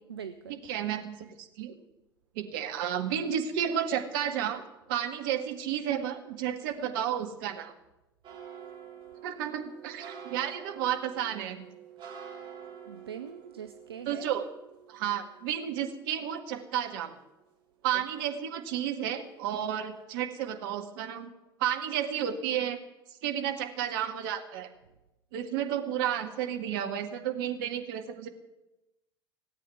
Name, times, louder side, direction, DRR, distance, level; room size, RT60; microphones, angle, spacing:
voice 1, 0.1-0.6 12.9-14.3 17.9-18.0, right 8 dB, 80° right, 9 dB, 0.7 m, -42 dB
voice 2, 0.6-1.7 2.4-4.6 4.9-7.7 9.2-11.6 14.1-14.4 14.9-17.2 17.8-21.3 21.6-22.8 23.2-24.7 25.3-28.3, right 9 dB, 60° right, 6 dB, 1.9 m, -32 dB
sound 1, 8.2-17.5 17.8-18.9 19.2-19.6 19.9-20.0, right 8 dB, 40° right, 4.7 m, -48 dB
18.0 x 8.4 x 9.5 m, 0.97 s
figure-of-eight pair, 75°, 13 cm